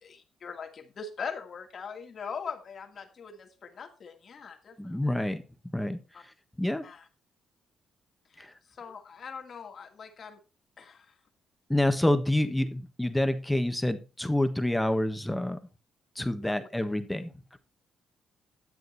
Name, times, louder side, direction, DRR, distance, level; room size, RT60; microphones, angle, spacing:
voice 1, 0.0-5.0 6.1-6.2 6.8-7.0 8.3-10.4 10.8-11.2 16.4-16.5, left 6 dB, 50° left, 4 dB, 2.3 m, -41 dB
voice 2, 4.8-5.4 5.7-6.0 6.6-6.8 8.4-8.5 11.7-15.6 16.1-17.6, left 1 dB, 5° left, 9 dB, 1.4 m, -28 dB
11.0 x 7.8 x 4.2 m, 0.30 s
cardioid pair, 90°, 0 cm